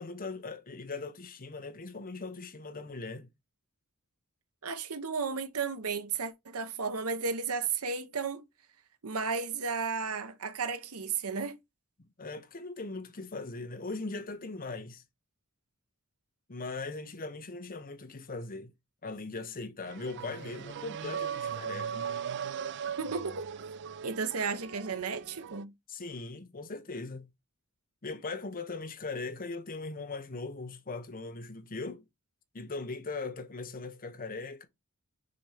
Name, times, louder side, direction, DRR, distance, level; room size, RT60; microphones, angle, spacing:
voice 1, 0.0-3.3 12.2-15.0 16.5-18.7 19.0-22.0 25.9-27.3 28.0-32.0 32.5-34.7, left 3 dB, 40° left, 0.9 m, -39 dB
voice 2, 4.6-8.4 9.0-11.6 23.0-23.3 24.0-25.7, right 5 dB, 75° right, 0.9 m, -33 dB
sound 1, 19.9-25.6, right 7 dB, 55° right, 0.4 m, -38 dB
6.6 x 4.3 x 3.4 m
head